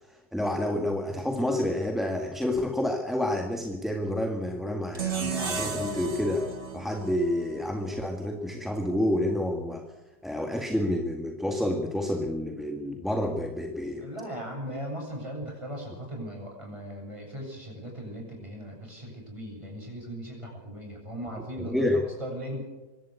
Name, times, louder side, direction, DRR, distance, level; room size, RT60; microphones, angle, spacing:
voice 1, 0.3-6.5 6.7-9.8 10.2-14.0 21.6-22.0, left 1 dB, ahead, 3 dB, 1.6 m, -29 dB
sound 1, 4.9-8.1, right 5 dB, 35° right, 2.0 m, -34 dB
voice 2, 14.0-21.8 22.2-22.6, equal, 15° right, 0 dB, 8.1 m, -38 dB
25.0 x 12.5 x 8.3 m, 1.1 s
omnidirectional pair, 2.0 m